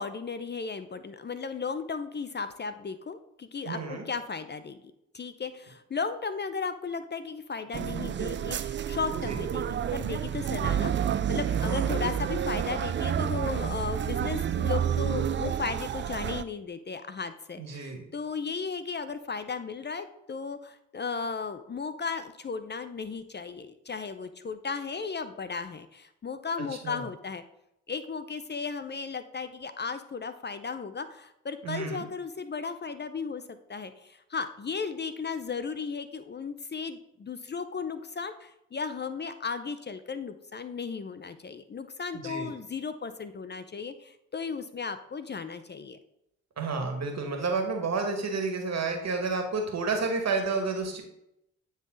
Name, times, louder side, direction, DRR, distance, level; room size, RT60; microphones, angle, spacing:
voice 1, 0.0-4.8 5.1-27.4 27.9-33.4 33.7-46.0, left 5 dB, 30° left, 11 dB, 0.6 m, -35 dB
voice 2, 3.7-4.0 9.3-9.4 11.5-12.0 17.6-18.0 26.6-27.0 31.6-32.0 42.1-42.5 46.6-51.0, right 4 dB, 50° right, 4 dB, 2.0 m, -31 dB
sound 1, 7.7-16.4, right 9 dB, 35° right, 0.4 m, -29 dB
9.1 x 4.0 x 3.9 m, 0.80 s
hypercardioid pair, 50°, 33 cm